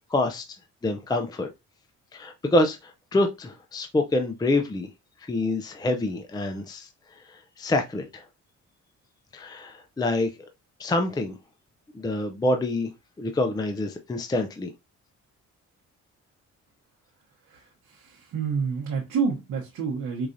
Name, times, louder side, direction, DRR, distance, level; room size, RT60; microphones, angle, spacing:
voice 1, 0.1-0.6 0.8-1.5 2.1-4.9 5.2-8.3 9.3-10.3 10.8-11.4 11.9-14.7, left 2 dB, 15° left, 0.5 m, -27 dB
voice 2, 17.4-20.3, right 5 dB, 70° right, 1.0 m, -29 dB
4.7 x 2.4 x 2.6 m
cardioid pair, 90°, 30 cm